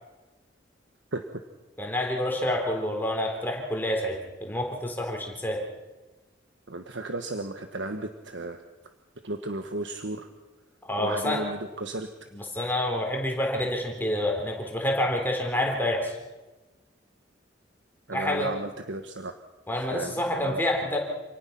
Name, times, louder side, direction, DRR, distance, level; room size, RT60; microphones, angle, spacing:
voice 1, 1.8-5.6 10.8-11.5 12.3-16.2 18.1-18.5 19.7-21.0, left 1 dB, 10° left, 1 dB, 3.9 m, -28 dB
voice 2, 6.7-8.6 9.2-10.3 11.0-12.1 18.1-19.3 19.7-20.6, right 2 dB, 75° right, 6 dB, 1.4 m, -34 dB
28.0 x 19.0 x 6.1 m, 1.2 s
head